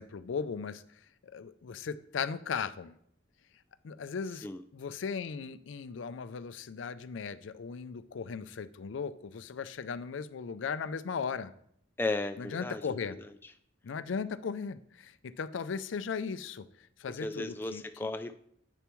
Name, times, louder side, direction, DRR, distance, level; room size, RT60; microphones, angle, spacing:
voice 1, 0.0-3.0 3.8-11.5 12.4-13.2 13.8-18.1, left 6 dB, 90° left, 13 dB, 0.4 m, -37 dB
voice 2, 12.0-13.3 17.2-18.4, left 2 dB, 10° left, 8 dB, 0.3 m, -35 dB
9.2 x 6.8 x 3.1 m, 0.68 s
head